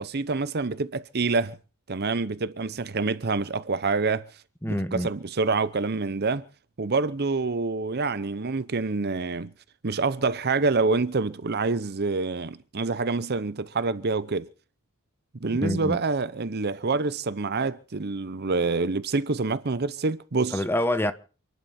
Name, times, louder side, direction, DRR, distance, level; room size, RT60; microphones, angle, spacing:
voice 1, 0.0-1.6 1.9-4.3 4.7-6.4 6.8-9.5 9.8-14.5 15.4-20.6, right 3 dB, 45° right, 0.8 m, -27 dB
voice 2, 4.6-5.1 15.6-16.0 20.5-21.1, left 1 dB, 10° left, 1.3 m, -26 dB
28.5 x 11.5 x 4.3 m
head